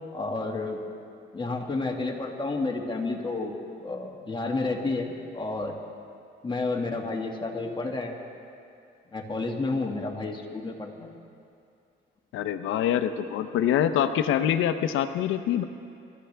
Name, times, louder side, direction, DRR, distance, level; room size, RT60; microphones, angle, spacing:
voice 1, 0.1-0.8 1.3-5.7 6.4-8.2 9.1-11.1, left 3 dB, 25° left, 0 dB, 2.0 m, -31 dB
voice 2, 12.3-15.6, left 10 dB, 85° left, 10 dB, 0.7 m, -25 dB
24.0 x 13.5 x 3.5 m, 2.5 s
cardioid pair, 90°, 20 cm